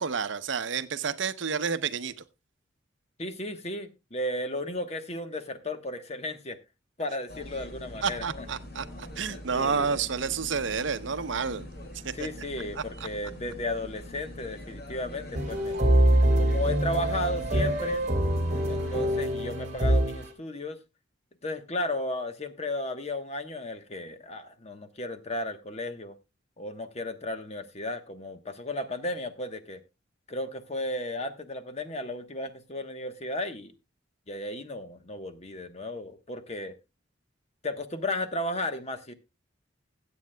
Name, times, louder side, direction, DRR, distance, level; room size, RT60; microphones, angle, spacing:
voice 1, 0.0-2.1 8.0-11.6 12.0-12.3 12.8-12.9, right 6 dB, 65° right, 0.7 m, -30 dB
voice 2, 3.2-6.6 7.0-8.5 9.5-10.0 12.1-15.8 16.4-18.0 18.7-20.8 21.4-26.1 26.6-29.8 30.3-33.7 34.3-36.7 37.6-39.1, left 1 dB, 35° left, 1.1 m, -34 dB
sound 1, 7.3-19.2, left 1 dB, 50° left, 2.3 m, -43 dB
sound 2, 15.3-20.3, right 1 dB, 35° right, 2.8 m, -24 dB
21.0 x 8.4 x 2.2 m
head